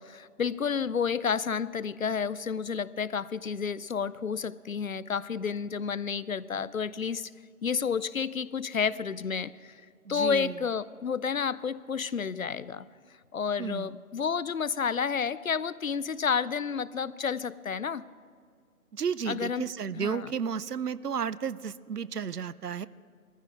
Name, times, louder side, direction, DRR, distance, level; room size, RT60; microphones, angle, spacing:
voice 1, 0.0-7.3 7.6-9.8 10.1-12.9 13.3-18.0 19.3-19.7 20.0-20.3, left 6 dB, 65° left, 19 dB, 0.5 m, -30 dB
voice 2, 10.1-10.6 13.6-14.0 18.9-22.9, right 7 dB, 85° right, 19 dB, 0.6 m, -33 dB
17.0 x 14.5 x 4.7 m, 2.2 s
figure-of-eight pair, 155°, 46 cm